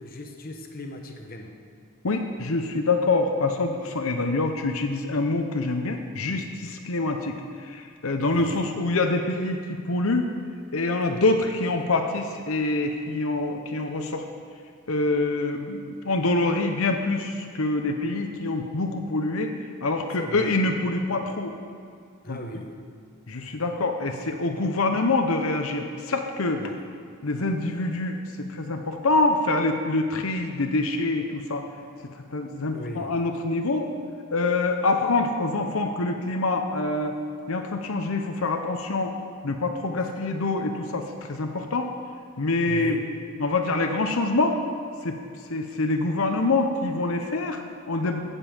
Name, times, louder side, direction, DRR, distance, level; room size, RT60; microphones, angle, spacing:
voice 1, 0.0-1.5 8.3-8.6 20.2-20.6 22.2-22.8 26.6-26.8 32.7-33.3 42.7-43.1, left 1 dB, 45° left, 3 dB, 1.0 m, -38 dB
voice 2, 2.0-7.3 7.6-9.6 9.8-10.2 10.7-14.3 14.9-19.5 19.8-21.5 22.3-22.4 23.3-26.7 27.2-31.7 32.3-33.9 34.3-37.2 37.5-39.1 39.4-41.9 42.4-43.0 43.4-44.6 45.0-45.2 45.5-48.2, left 2 dB, 75° left, 5 dB, 0.9 m, -25 dB
15.5 x 5.5 x 7.1 m, 2.3 s
head